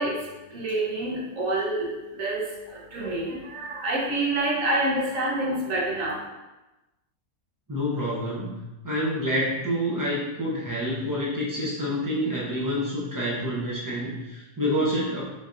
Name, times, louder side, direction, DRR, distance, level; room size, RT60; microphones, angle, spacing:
voice 1, 0.0-6.3, right 2 dB, 70° right, -3 dB, 1.2 m, -28 dB
voice 2, 7.7-15.2, equal, 30° right, -6 dB, 0.3 m, -28 dB
3.7 x 2.7 x 2.4 m, 1.1 s
omnidirectional pair, 1.5 m